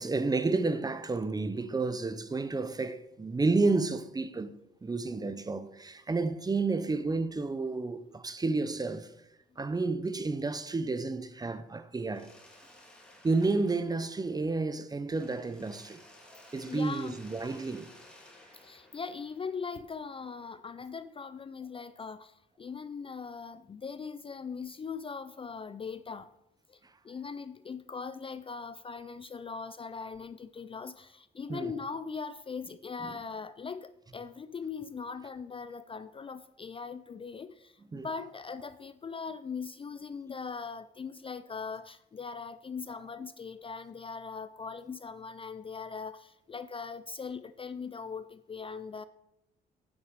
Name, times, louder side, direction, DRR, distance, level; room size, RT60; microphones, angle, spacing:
voice 1, 0.0-9.1 9.6-12.3 13.2-16.0 16.3-17.9 31.5-31.7 33.0-33.1 37.9-38.1, right 3 dB, 20° right, 0.6 m, -31 dB
Mechanisms, 12.1-14.7 15.1-19.9, left 1 dB, 5° left, 2.2 m, -56 dB
voice 2, 16.7-17.2 18.5-26.3 26.7-26.8 27.0-49.0, left 5 dB, 25° left, 0.4 m, -40 dB
8.7 x 5.6 x 4.7 m
cardioid pair, 90°, 20 cm